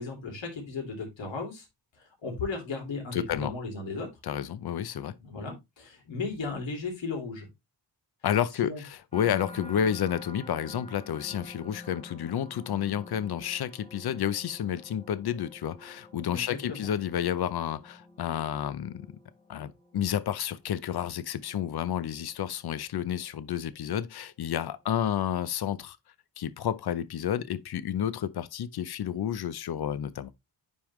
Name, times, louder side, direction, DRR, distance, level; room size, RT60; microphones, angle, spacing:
voice 1, 0.0-1.7 2.0-4.1 5.2-7.5 8.6-8.8 16.3-16.9, left 4 dB, 80° left, 2.9 m, -36 dB
voice 2, 3.1-3.5 4.2-5.1 8.2-19.1 19.5-26.0 26.4-30.3, left 9 dB, 60° left, 0.7 m, -30 dB
sound 1, 9.1-24.3 24.8-25.3, left 2 dB, 15° left, 0.9 m, -50 dB
9.6 x 3.7 x 3.1 m
wide cardioid pair, 95°, 44 cm